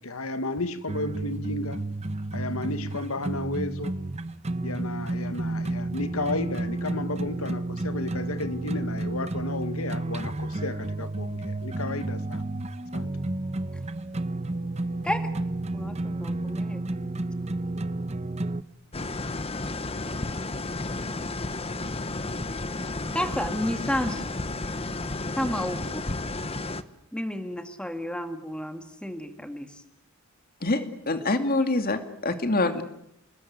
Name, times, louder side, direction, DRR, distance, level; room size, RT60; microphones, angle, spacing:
voice 1, 0.0-1.8 2.3-4.0 4.6-12.4 12.9-13.2, left 2 dB, 85° left, 1.7 m, -33 dB
sound 1, 0.9-18.6, right 2 dB, 30° right, 1.0 m, -31 dB
voice 2, 15.7-16.8 23.1-24.3 25.4-26.1 27.1-29.7, left 1 dB, 5° left, 2.0 m, -31 dB
sound 2, 18.9-26.8, left 2 dB, 30° left, 1.2 m, -32 dB
voice 3, 30.6-32.8, left 2 dB, 45° left, 2.5 m, -25 dB
30.0 x 20.5 x 9.5 m
head